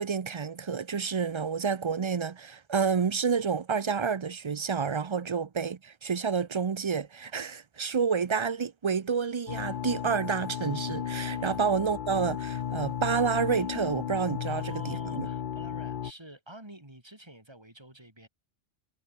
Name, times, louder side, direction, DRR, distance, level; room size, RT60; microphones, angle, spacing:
voice 1, 0.0-15.3, right 6 dB, 40° right, 0.4 m, -29 dB
sound 1, 9.5-16.1, left 9 dB, 50° left, 0.7 m, -34 dB
voice 2, 14.5-18.3, right 1 dB, 20° right, 4.1 m, -49 dB
omnidirectional pair, 1.2 m